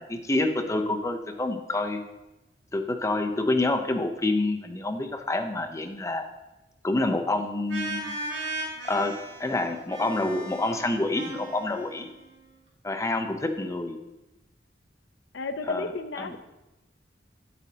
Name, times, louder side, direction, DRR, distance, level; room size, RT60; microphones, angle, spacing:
voice 1, 0.0-2.0 2.7-6.3 6.8-8.1 8.8-9.1 9.4-12.1 12.8-14.0 15.7-15.9 16.2-16.3, left 2 dB, 15° left, 6 dB, 0.5 m, -27 dB
sound 1, 7.7-12.4, right 2 dB, 70° right, 1.9 m, -37 dB
voice 2, 15.3-16.4, left 3 dB, 80° left, 9 dB, 0.6 m, -32 dB
8.4 x 8.3 x 2.7 m, 1.0 s
head